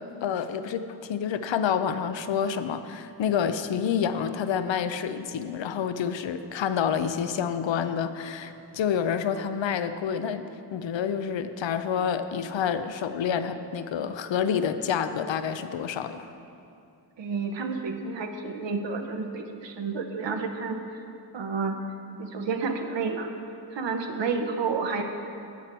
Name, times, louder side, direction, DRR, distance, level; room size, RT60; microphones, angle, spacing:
voice 1, 0.2-16.3, left 7 dB, 85° left, 10 dB, 0.6 m, -28 dB
voice 2, 17.2-20.8 21.3-21.8 22.2-23.3 23.7-25.0, right 4 dB, 80° right, 4 dB, 0.9 m, -30 dB
13.0 x 8.3 x 4.5 m, 2.6 s
wide cardioid pair, 115°, 44 cm